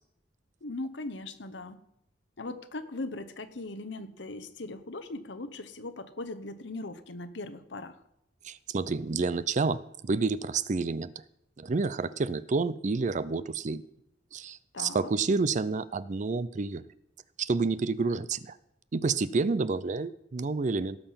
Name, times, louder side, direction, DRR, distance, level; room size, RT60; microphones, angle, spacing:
voice 1, 0.6-1.8 2.4-8.0 14.7-15.1, left 2 dB, 75° left, 11 dB, 1.0 m, -39 dB
voice 2, 8.4-11.1 11.6-13.8 14.3-16.8 17.4-18.6 18.9-21.0, right 4 dB, 40° right, 17 dB, 0.5 m, -29 dB
18.0 x 6.9 x 5.7 m, 0.80 s
head